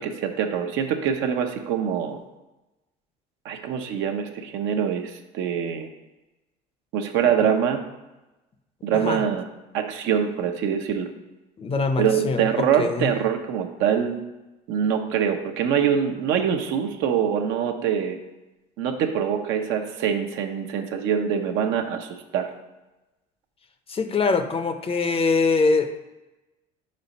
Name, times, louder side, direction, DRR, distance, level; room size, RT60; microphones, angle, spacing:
voice 1, 0.0-2.2 3.4-5.9 6.9-7.8 8.8-9.4 9.7-11.1 12.0-14.2 14.7-18.2 18.8-22.5, right 8 dB, 70° right, 5 dB, 0.8 m, -24 dB
voice 2, 11.6-13.1 23.9-25.9, left 4 dB, 30° left, 9 dB, 0.6 m, -23 dB
4.9 x 4.3 x 5.3 m, 1.0 s
supercardioid pair, 85°, 20 cm